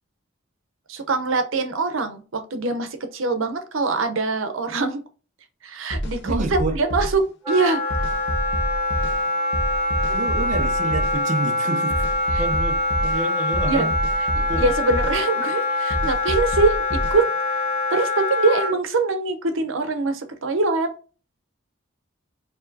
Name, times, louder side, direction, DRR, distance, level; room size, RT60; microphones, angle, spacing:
voice 1, 0.9-5.0 5.6-7.2 7.5-7.8 12.3-12.4 13.7-13.9 14.4-17.2 17.9-20.9, right 3 dB, 75° right, 0.7 m, -23 dB
sound 1, 5.9-7.2 7.9-9.2 9.5-11.2 11.9-13.2 13.5-15.2 15.9-17.2, equal, 55° left, 0.7 m, -27 dB
voice 2, 6.2-6.8 10.1-12.1 12.4-13.9 14.5-14.6, right 2 dB, 35° right, 0.5 m, -28 dB
Wind instrument woodwind instrument, 7.4-18.7, left 2 dB, 10° right, 1.9 m, -24 dB
4.6 x 2.8 x 2.6 m
head